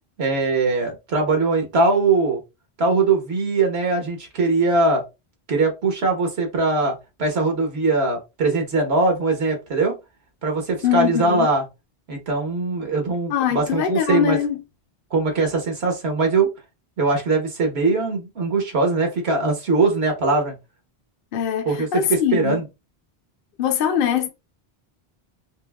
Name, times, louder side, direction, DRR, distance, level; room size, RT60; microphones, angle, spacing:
voice 1, 0.2-2.4 2.8-5.0 5.5-10.0 10.4-11.6 12.1-14.4 15.1-16.5 17.0-20.5 21.6-22.6, right 3 dB, 85° right, 1.3 m, -21 dB
voice 2, 10.8-11.5 13.3-14.6 21.3-22.6 23.6-24.3, left 8 dB, 60° left, 0.7 m, -22 dB
5.0 x 2.0 x 2.3 m
omnidirectional pair, 1.1 m